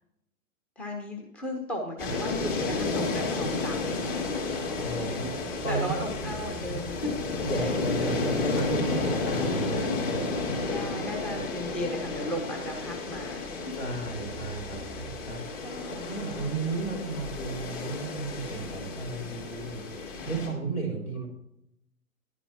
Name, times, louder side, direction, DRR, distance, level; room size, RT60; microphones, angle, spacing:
voice 1, 0.8-4.4 5.1-5.3 5.7-8.2 10.7-13.7 15.6-16.2, equal, 5° left, 1 dB, 0.6 m, -36 dB
sound 1, 2.0-20.5, left 3 dB, 40° left, 2.8 m, -32 dB
voice 2, 4.8-5.3 5.6-5.9 7.4-10.3 11.3-11.4 13.7-15.4 15.9-19.8 20.2-21.3, right 3 dB, 75° left, -1 dB, 4.0 m, -34 dB
10.5 x 10.0 x 2.8 m, 0.82 s
figure-of-eight pair, 115°, 42 cm